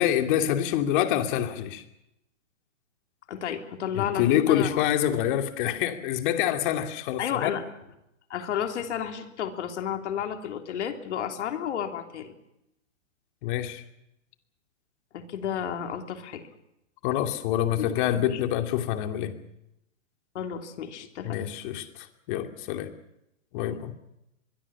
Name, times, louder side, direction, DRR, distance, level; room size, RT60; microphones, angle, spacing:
voice 1, 0.0-1.8 3.9-7.5 13.4-13.8 17.0-19.3 21.2-22.9 23.5-23.9, left 11 dB, 40° left, 6 dB, 2.8 m, -26 dB
voice 2, 3.3-4.8 7.2-7.6 8.3-12.3 15.1-16.4 17.8-17.9 18.1-18.4 20.4-21.3 23.5-23.8, left 9 dB, 60° left, 5 dB, 3.4 m, -32 dB
23.5 x 22.5 x 7.3 m, 0.85 s
hypercardioid pair, 145°, 39 cm